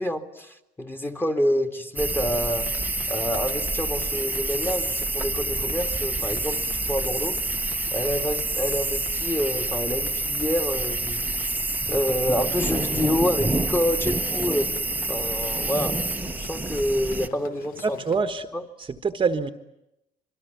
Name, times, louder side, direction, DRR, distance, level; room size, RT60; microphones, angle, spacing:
voice 1, 0.0-2.7 3.1-7.4 7.9-11.5 11.9-14.7 15.1-16.0 16.3-18.0 18.5-18.6, equal, 15° left, 6 dB, 2.5 m, -27 dB
sound 1, 2.0-17.3, right 2 dB, 10° right, 1.2 m, -27 dB
sound 2, 2.4-18.2, left 8 dB, 60° left, 1.4 m, -46 dB
voice 2, 17.8-18.5 18.8-19.5, right 5 dB, 30° right, 9 dB, 1.4 m, -25 dB
26.0 x 24.0 x 9.5 m, 0.86 s
cardioid pair, 110°, 17 cm